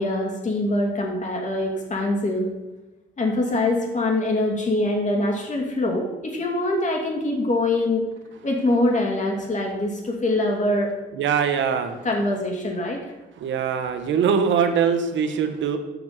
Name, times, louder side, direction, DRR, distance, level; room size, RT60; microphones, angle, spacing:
voice 1, 0.0-2.5 3.2-8.1 8.4-10.9 12.0-13.0, left 2 dB, 40° left, 0 dB, 2.4 m, -24 dB
voice 2, 11.1-12.0 13.4-15.8, right 7 dB, 70° right, 8 dB, 1.0 m, -22 dB
7.1 x 6.1 x 5.9 m, 1.1 s
cardioid pair, 90°, 20 cm